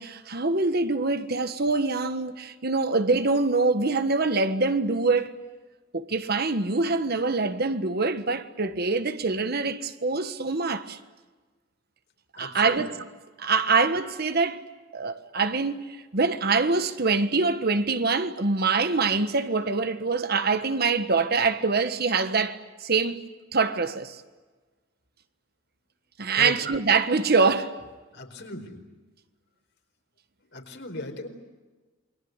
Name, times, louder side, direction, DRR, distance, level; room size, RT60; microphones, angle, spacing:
voice 1, 0.0-5.3 5.9-11.0 12.4-12.9 13.4-14.6 14.9-23.2 23.5-24.2 26.2-27.8, right 4 dB, 55° right, 1.5 m, -24 dB
voice 2, 12.4-12.8 26.3-26.5 28.1-28.8 30.5-31.3, left 2 dB, 60° left, 4.6 m, -37 dB
28.5 x 23.0 x 8.1 m
head